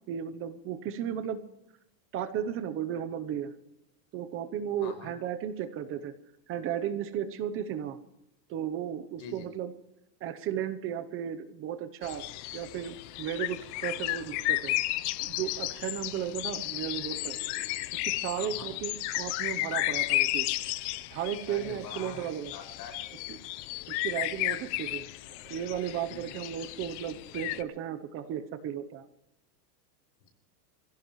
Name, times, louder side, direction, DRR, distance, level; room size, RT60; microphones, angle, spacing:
voice 1, 0.1-1.4 2.1-3.5 4.1-6.1 6.5-8.0 8.5-9.7 10.2-12.2 12.5-14.7 15.2-17.4 18.1-20.5 21.1-22.5 23.3-23.4 23.9-25.1 25.4-29.0, right 9 dB, 25° right, 10 dB, 0.8 m, -34 dB
voice 2, 4.8-5.1 9.2-9.5 18.3-18.7 21.5-23.0 26.1-26.4, left 6 dB, 85° left, 4 dB, 6.1 m, -44 dB
sound 1, 12.0-27.6, left 18 dB, 45° left, 0.7 m, -33 dB
23.0 x 16.5 x 3.1 m, 0.88 s
supercardioid pair, 160°, 50 cm